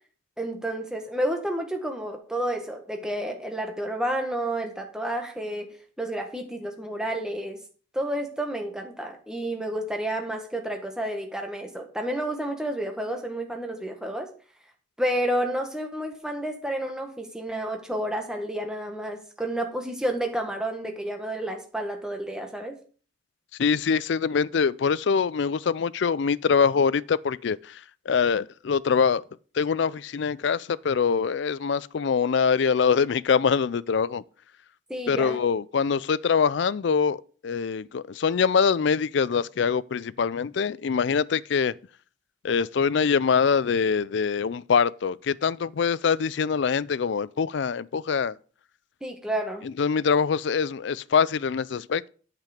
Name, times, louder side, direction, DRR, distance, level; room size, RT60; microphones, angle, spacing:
voice 1, 0.4-7.6 7.9-14.3 15.0-22.8 34.9-35.4 49.0-49.6, right 1 dB, 5° right, 1.5 m, -30 dB
voice 2, 23.6-27.8 28.1-29.2 29.5-34.2 35.1-41.7 42.4-48.3 49.6-52.1, left 6 dB, 60° left, 0.4 m, -24 dB
9.0 x 7.6 x 5.1 m
head